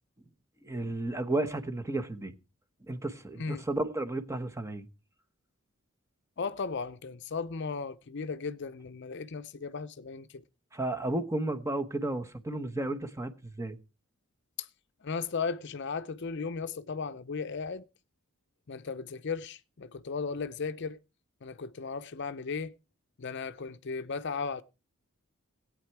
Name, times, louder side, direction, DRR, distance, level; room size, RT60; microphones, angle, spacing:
voice 1, 0.6-2.3 2.9-4.9 10.7-13.8, right 2 dB, 15° right, 1.0 m, -33 dB
voice 2, 6.4-10.4 14.6-14.7 15.0-17.8 18.7-21.0 21.4-22.7 23.2-24.6, left 5 dB, 55° left, 0.6 m, -36 dB
18.0 x 8.8 x 4.6 m
head